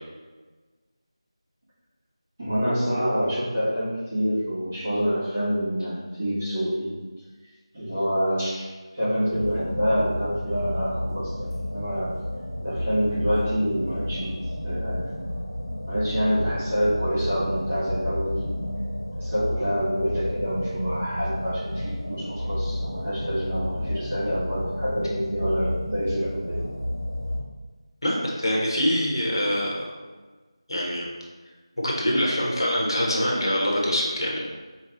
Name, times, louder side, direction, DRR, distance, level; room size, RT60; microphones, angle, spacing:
voice 1, 2.4-6.9 7.7-8.7 8.9-12.1 12.6-14.4 14.6-15.1 15.9-18.4 19.2-26.6, equal, 15° right, -13 dB, 0.9 m, -27 dB
sound 1, 9.3-27.4, left 1 dB, 25° left, 0.8 m, -31 dB
voice 2, 28.0-29.8 30.7-31.1 31.8-34.5, equal, 50° left, -3 dB, 1.1 m, -24 dB
5.4 x 2.3 x 3.9 m, 1.3 s
figure-of-eight pair, 180°, 3 cm